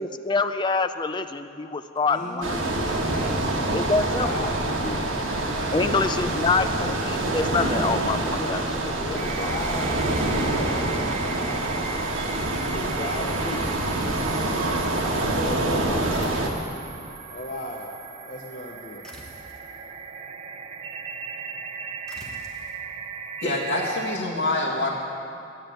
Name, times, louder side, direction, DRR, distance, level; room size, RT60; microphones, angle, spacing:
voice 1, 0.0-2.8 3.7-4.3 5.7-8.6 9.1-9.5, left 4 dB, 20° left, 10 dB, 0.4 m, -26 dB
voice 2, 2.1-5.2 5.5-6.7 8.3-8.6 9.0-10.7 12.7-13.7 15.1-16.1 17.3-17.9 18.3-19.1, left 2 dB, 40° left, -1 dB, 0.8 m, -36 dB
sound 1, 2.4-16.5, right 2 dB, 75° right, 1.4 m, -26 dB
sound 2, 9.2-24.2, right 5 dB, 30° right, 0.5 m, -38 dB
sound 3, 16.1-16.8 19.0-19.7 22.1-22.8, equal, 5° left, 1.2 m, -45 dB
voice 3, 23.4-24.9, left 2 dB, 85° left, -8 dB, 1.8 m, -25 dB
10.5 x 8.7 x 9.0 m, 2.7 s
head